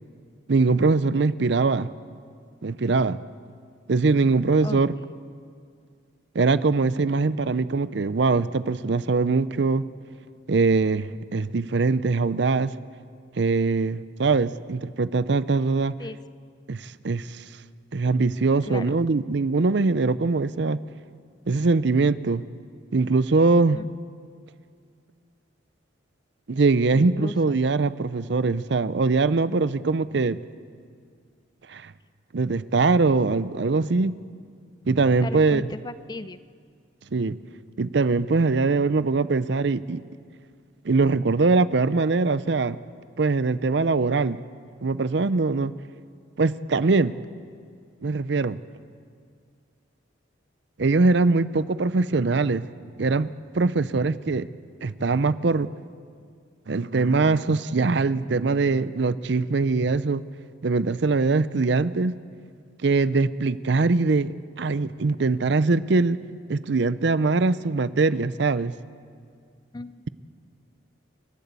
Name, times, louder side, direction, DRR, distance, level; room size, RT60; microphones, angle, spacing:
voice 1, 0.5-1.9 2.6-3.2 3.9-4.9 6.3-9.8 10.5-12.7 13.4-15.9 16.7-17.4 17.9-20.8 21.5-22.4 22.9-23.8 26.5-30.4 31.7-31.9 32.3-34.2 34.9-35.7 37.1-37.4 37.8-40.0 40.8-42.8 43.2-44.4 44.8-45.7 46.4-47.1 48.0-48.6 50.8-52.7 53.0-53.3 53.5-54.5 54.8-55.7 56.7-60.2 60.6-62.1 62.8-66.2 66.5-68.7, right 3 dB, 65° right, 16 dB, 0.5 m, -22 dB
voice 2, 26.9-27.3 35.2-36.4 69.7-70.1, left 2 dB, 20° left, 14 dB, 0.4 m, -35 dB
29.0 x 12.5 x 8.2 m, 2.1 s
head